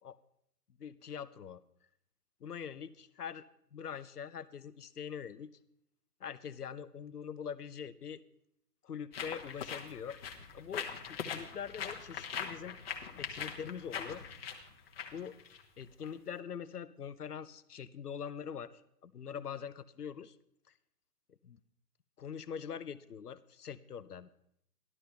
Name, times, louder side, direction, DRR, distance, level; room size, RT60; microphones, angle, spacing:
voice 1, 0.8-1.6 2.4-3.4 3.7-5.5 6.2-8.2 8.8-10.2 10.5-12.8 13.1-14.3 15.1-15.4 15.8-20.4 21.3-21.6 22.2-24.3, left 7 dB, 70° left, 15 dB, 0.8 m, -43 dB
sound 1, 9.1-16.1, left 7 dB, 35° left, 1.2 m, -42 dB
13.5 x 12.0 x 3.3 m, 0.73 s
figure-of-eight pair, 130°, 48 cm